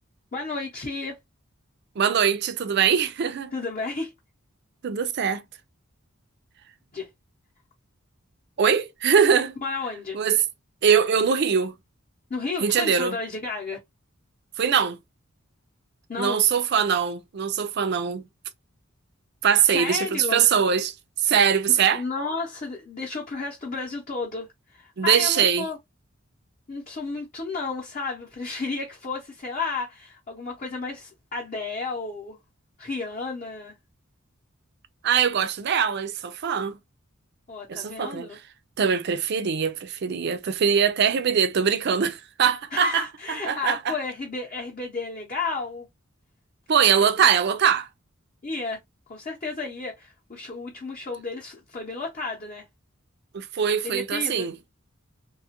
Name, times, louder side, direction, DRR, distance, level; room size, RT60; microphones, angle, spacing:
voice 1, 0.3-1.2 3.5-4.1 6.9-7.1 9.6-10.2 12.3-13.8 16.1-16.4 19.6-20.5 21.7-25.8 26.7-32.4 32.8-33.8 37.5-38.4 42.7-45.9 46.8-47.3 48.4-48.8 49.1-52.7 53.8-54.5, left 3 dB, 35° left, 0.7 m, -32 dB
voice 2, 2.0-3.5 4.8-5.4 8.6-9.6 10.1-10.4 10.8-11.7 12.6-13.2 14.6-15.0 16.2-18.2 19.4-20.9 21.2-22.0 25.0-25.7 35.0-36.8 37.7-38.3 38.8-43.9 46.7-47.9 53.3-54.5, right 7 dB, 55° right, 0.4 m, -22 dB
2.8 x 2.3 x 2.8 m
head